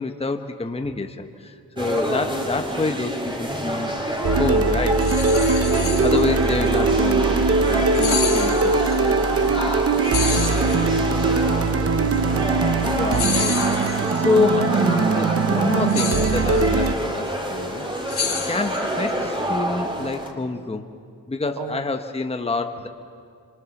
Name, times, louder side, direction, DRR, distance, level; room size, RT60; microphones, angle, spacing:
voice 1, 0.0-5.1 6.0-9.2 12.9-17.9 18.4-20.9 21.3-22.9, left 3 dB, 15° left, 6 dB, 1.0 m, -27 dB
sound 1, 1.8-20.3, right 1 dB, 10° right, 2.4 m, -27 dB
sound 2, 4.2-16.9, right 4 dB, 35° right, 0.8 m, -21 dB
sound 3, 5.0-6.5 7.9-9.0 10.0-11.2 13.1-14.2 15.9-16.9 18.1-19.1, left 6 dB, 75° left, 2.4 m, -29 dB
voice 2, 5.8-6.3 9.7-9.8 10.2-11.5 21.6-21.8, right 8 dB, 85° right, 10 dB, 1.2 m, -36 dB
26.0 x 24.5 x 7.2 m, 2.3 s
wide cardioid pair, 150°, 39 cm